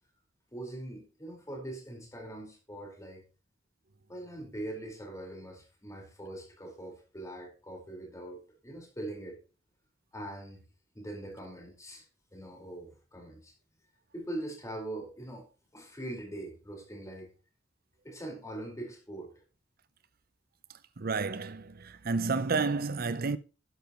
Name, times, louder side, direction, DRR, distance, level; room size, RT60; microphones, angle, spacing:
voice 1, 0.5-3.2 4.1-9.4 10.1-10.6 10.9-12.0 12.3-13.5 14.1-15.5 15.7-17.3 18.0-19.3, right 1 dB, 15° left, 4.8 m, -42 dB
voice 2, 21.0-23.4, right 4 dB, 55° right, 0.7 m, -30 dB
12.0 x 10.5 x 3.1 m
head